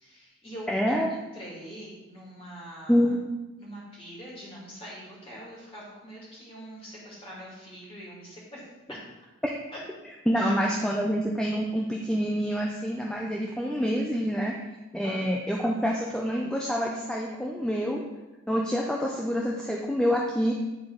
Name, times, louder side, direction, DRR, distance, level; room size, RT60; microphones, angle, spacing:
voice 1, 0.0-3.1 3.6-8.6 8.9-9.0 9.7-9.8 10.4-10.8 15.0-15.2, equal, 25° left, -6 dB, 2.5 m, -43 dB
voice 2, 0.7-1.1 2.9-3.2 9.4-9.5 10.3-14.6 14.9-18.0 18.5-20.5, equal, 5° left, -2 dB, 0.5 m, -27 dB
9.6 x 4.0 x 4.7 m, 1.1 s
head